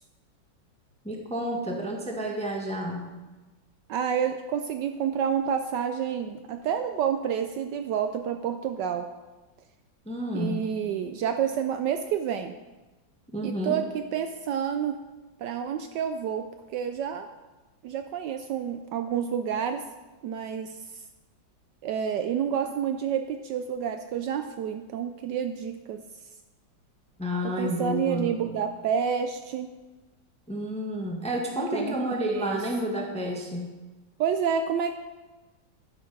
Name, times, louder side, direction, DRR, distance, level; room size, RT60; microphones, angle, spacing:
voice 1, 1.0-3.1 10.0-10.6 13.3-13.8 27.2-28.4 30.5-33.7, equal, 5° left, 1 dB, 0.8 m, -30 dB
voice 2, 3.9-9.1 10.3-12.5 13.4-15.0 15.4-17.3 17.8-19.9 20.2-21.0 21.8-26.0 27.4-29.7 31.7-31.9 32.3-32.6 34.2-34.9, right 8 dB, 75° right, 7 dB, 1.1 m, -29 dB
11.5 x 5.9 x 5.3 m, 1.2 s
omnidirectional pair, 2.2 m